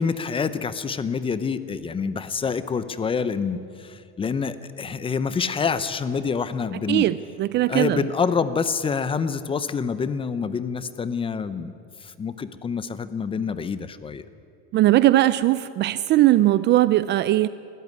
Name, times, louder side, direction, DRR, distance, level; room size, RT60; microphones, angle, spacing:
voice 1, 0.0-7.1 7.7-11.7 12.0-14.3, left 5 dB, 15° left, 14 dB, 0.6 m, -27 dB
voice 2, 6.9-8.0 14.7-17.5, right 15 dB, 35° right, 16 dB, 0.4 m, -19 dB
20.0 x 13.5 x 9.6 m, 2.4 s
supercardioid pair, 140°, 32 cm